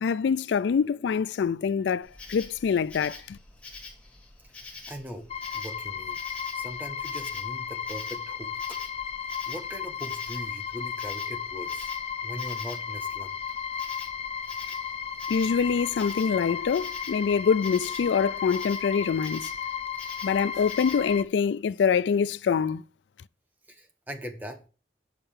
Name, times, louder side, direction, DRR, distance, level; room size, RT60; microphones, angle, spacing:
voice 1, 0.0-3.4 15.3-19.5 20.2-22.8, left 6 dB, 85° left, 0.3 m, -25 dB
Insect, 2.0-21.2, left 3 dB, 10° left, 3.2 m, -46 dB
voice 2, 4.9-5.3 5.5-6.2 6.5-8.8 9.5-11.9 12.2-13.3 23.7-24.6, equal, 10° right, 1.5 m, -40 dB
sound 1, 5.3-21.2, left 7 dB, 35° left, 0.7 m, -34 dB
7.6 x 5.5 x 6.9 m
head